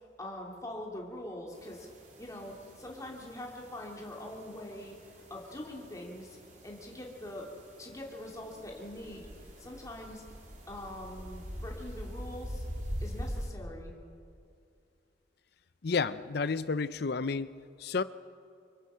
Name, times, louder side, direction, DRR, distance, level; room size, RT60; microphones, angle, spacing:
voice 1, 0.2-1.9 2.2-4.9 5.3-6.4 6.6-7.5 7.8-9.3 9.6-10.2 10.7-12.6 13.0-13.9, left 1 dB, 20° left, -1 dB, 2.8 m, -43 dB
sound 1, 1.5-13.5, equal, 45° right, 3.9 m, -44 dB
voice 2, 15.8-18.0, left 4 dB, 60° left, 15 dB, 0.6 m, -31 dB
25.5 x 23.5 x 5.7 m, 2.4 s
head